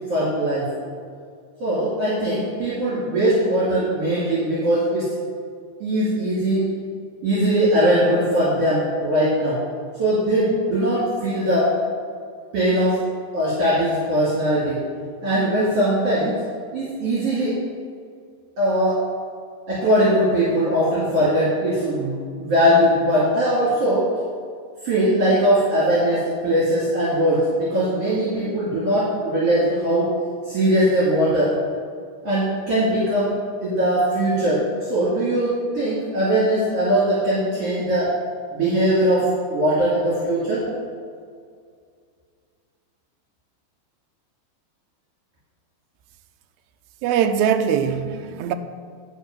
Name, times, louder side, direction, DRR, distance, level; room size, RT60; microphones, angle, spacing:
voice 1, 0.1-0.7 1.6-5.0 5.8-6.6 7.2-9.6 10.0-11.7 12.5-13.0 13.3-14.8 15.2-16.4 16.7-17.6 18.6-19.0 19.7-24.1 24.8-30.1 30.4-31.5 32.2-33.3 33.6-38.1 38.5-40.7, right 1 dB, 50° right, 3.3 m, -20 dB
voice 2, 47.0-48.5, right 8 dB, 85° right, 1.7 m, -21 dB
11.0 x 5.1 x 6.0 m
omnidirectional pair, 3.9 m